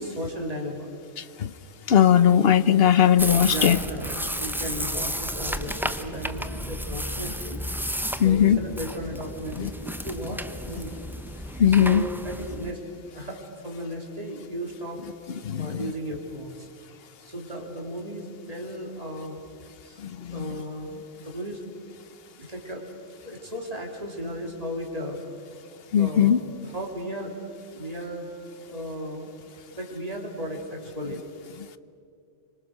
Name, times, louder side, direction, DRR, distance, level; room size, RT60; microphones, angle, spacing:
voice 1, 0.0-0.9 3.5-7.6 8.2-11.0 11.7-12.9 13.1-15.0 15.6-16.7 17.2-19.4 19.8-20.0 20.3-21.6 22.4-22.9 23.2-25.2 25.9-26.4 26.6-27.4 27.7-28.3 28.7-29.3 29.7-31.2, equal, 30° right, 1 dB, 3.6 m, -35 dB
voice 2, 1.9-3.8 8.2-8.6 9.6-9.7 11.6-12.0 15.4-15.8 20.0-20.4 25.9-26.4, left 9 dB, 55° left, 15 dB, 1.0 m, -19 dB
sound 1, 3.2-12.7, equal, ahead, 0.7 m, -32 dB
27.0 x 25.0 x 6.6 m, 2.4 s
omnidirectional pair, 1.2 m